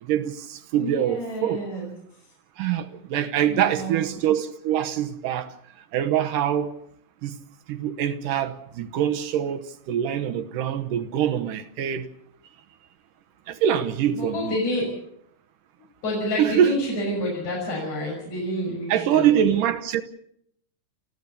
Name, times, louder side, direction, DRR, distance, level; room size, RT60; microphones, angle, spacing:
voice 1, 0.0-1.6 2.6-5.5 5.9-6.8 7.2-7.4 7.7-12.1 13.5-14.6 16.4-16.8 18.9-20.0, right 10 dB, 80° right, 2.6 m, -24 dB
voice 2, 0.7-1.9 3.5-4.0 14.2-14.9 16.0-19.3, left 1 dB, 55° left, 7.5 m, -29 dB
29.5 x 15.0 x 7.0 m
omnidirectional pair, 3.9 m